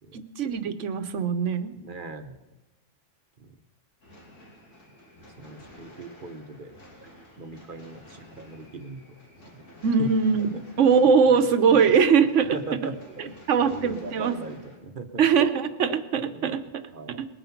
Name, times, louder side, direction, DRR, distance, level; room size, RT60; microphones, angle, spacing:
voice 1, 0.1-1.7 9.8-10.5 10.8-12.6 13.5-14.3 15.2-16.6 17.2-17.3, right 6 dB, 75° right, 11 dB, 1.2 m, -21 dB
voice 2, 1.8-2.4 3.4-3.6 5.4-6.7 7.0-7.1 7.4-9.1 10.0-10.1 10.5-10.6 11.3-11.5 12.4-15.2 16.3-16.6 16.9-17.3, right 3 dB, 45° right, 9 dB, 1.0 m, -39 dB
sound 1, 4.0-14.8, left 1 dB, 85° left, 3.3 m, -50 dB
20.5 x 9.1 x 5.8 m, 1.1 s
omnidirectional pair, 1.3 m